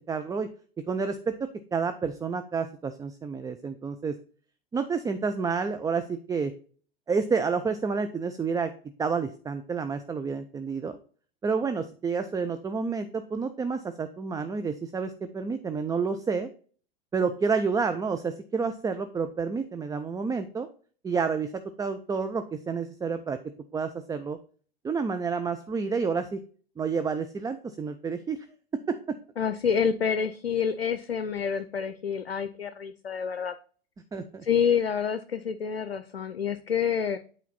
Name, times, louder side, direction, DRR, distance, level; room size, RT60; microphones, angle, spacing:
voice 1, 0.1-0.5 0.9-1.3 1.7-4.1 4.7-6.5 7.1-8.7 9.0-11.0 11.4-16.5 17.1-20.7 21.0-23.4 23.7-24.4 24.8-26.4 26.8-28.4 28.9-29.0 34.1-34.4, right 5 dB, 10° right, 9 dB, 0.4 m, -29 dB
voice 2, 29.4-33.6 34.4-37.2, left 7 dB, 90° left, 11 dB, 0.6 m, -28 dB
8.3 x 4.4 x 4.0 m, 0.43 s
figure-of-eight pair, 90°, 30 cm